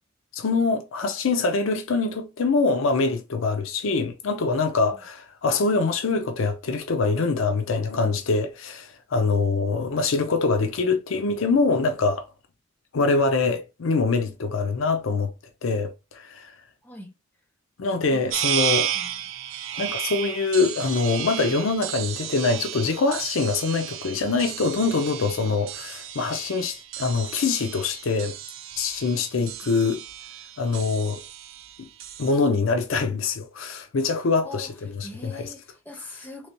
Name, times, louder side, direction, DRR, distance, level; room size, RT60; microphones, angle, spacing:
voice 1, 0.3-12.3 12.9-15.3 15.6-16.6 17.8-18.9 19.8-28.4 28.8-30.0 30.6-31.2 32.2-35.5, left 4 dB, 75° left, 0.5 m, -24 dB
voice 2, 16.8-17.1 18.1-18.3 18.9-19.3 34.4-34.7 35.0-36.5, left 2 dB, 10° left, 0.8 m, -42 dB
sound 1, 18.3-32.3, right 10 dB, 70° right, 0.5 m, -33 dB
3.3 x 3.2 x 2.8 m
head